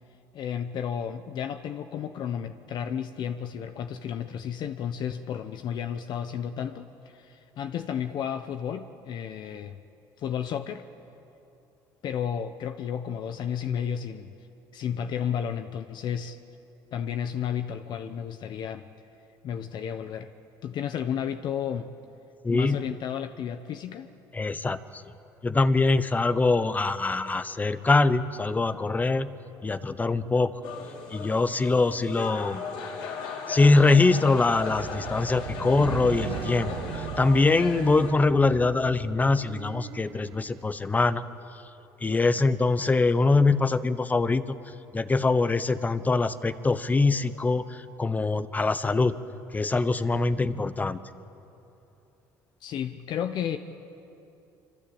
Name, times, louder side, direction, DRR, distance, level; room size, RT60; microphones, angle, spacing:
voice 1, 0.3-9.8 10.2-10.8 12.0-14.3 14.7-16.4 16.9-18.9 19.4-20.3 20.6-21.9 22.5-24.1 52.6-53.6, left 8 dB, 55° left, 8 dB, 1.1 m, -32 dB
voice 2, 22.4-22.8 24.3-25.0 25.4-30.5 31.1-32.6 33.5-41.2 42.0-44.6 44.9-49.1 49.5-51.0, left 3 dB, 20° left, 13 dB, 1.1 m, -23 dB
sound 1, 30.6-38.1, left 5 dB, 75° left, 4.8 m, -37 dB
sound 2, 34.4-40.7, right 11 dB, 70° right, 1.2 m, -38 dB
26.0 x 25.5 x 8.8 m, 2.9 s
supercardioid pair, 100°, 9 cm